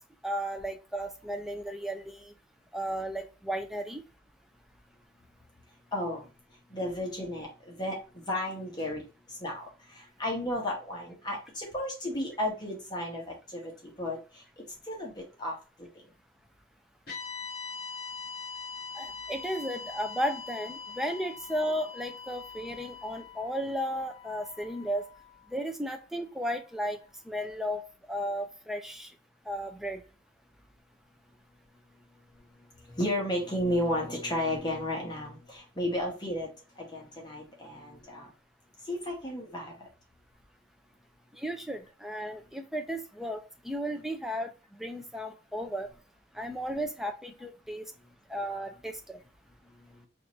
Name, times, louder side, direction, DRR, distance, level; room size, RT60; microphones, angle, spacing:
voice 1, 0.2-2.3 2.7-4.0 18.9-25.1 25.5-27.0 27.3-27.8 28.1-29.1 29.5-30.0 41.4-43.4 43.6-45.9 46.4-47.8 48.3-49.2, equal, ahead, 4 dB, 0.5 m, -34 dB
voice 2, 5.9-6.3 6.7-9.1 9.4-14.4 14.9-15.6 32.9-36.5 36.8-38.3 38.9-39.7, left 1 dB, 25° left, -2 dB, 1.1 m, -33 dB
sound 1, 17.1-25.4, left 5 dB, 50° left, 1.9 m, -42 dB
5.0 x 2.6 x 3.0 m, 0.33 s
head